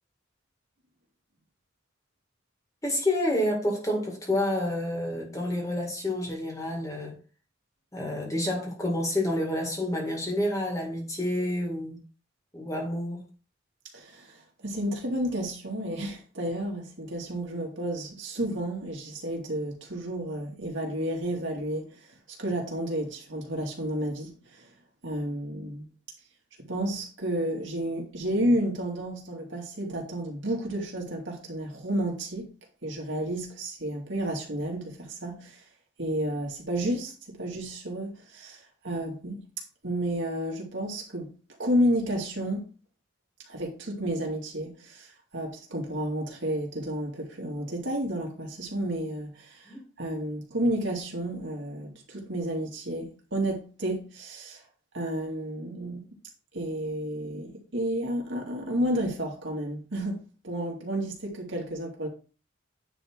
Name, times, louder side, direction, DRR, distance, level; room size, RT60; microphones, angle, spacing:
voice 1, 2.8-7.2 7.9-12.0 12.5-13.2 49.7-49.8 55.8-56.0, left 1 dB, 15° left, 2.0 m, -29 dB
voice 2, 13.9-22.0 22.3-24.7 25.0-25.8 26.6-32.5 32.8-35.6 36.0-39.4 39.8-41.3 41.6-42.7 43.5-54.6 54.9-56.0 56.5-62.1, right 1 dB, 70° right, 2.4 m, -31 dB
9.7 x 3.7 x 4.6 m
head